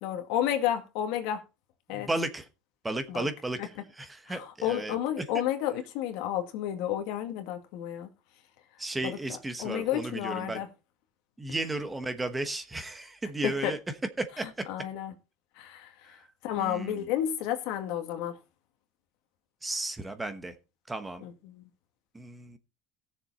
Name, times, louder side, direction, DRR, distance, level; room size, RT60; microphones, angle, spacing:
voice 1, 0.0-1.4 1.9-2.1 3.1-3.3 3.6-3.7 4.3-8.1 9.0-9.2 9.6-10.7 13.4-13.7 14.7-15.1 15.6-18.4 21.2-21.6, left 11 dB, 65° left, 2.0 m, -31 dB
voice 2, 1.9-2.5 2.8-3.6 4.0-5.0 8.8-10.6 11.4-13.8 14.2-14.7 16.6-17.1 19.6-20.5 20.9-21.3 22.1-22.6, right 2 dB, 10° right, 1.1 m, -34 dB
16.5 x 7.0 x 4.1 m
cardioid pair, 140°, 0 cm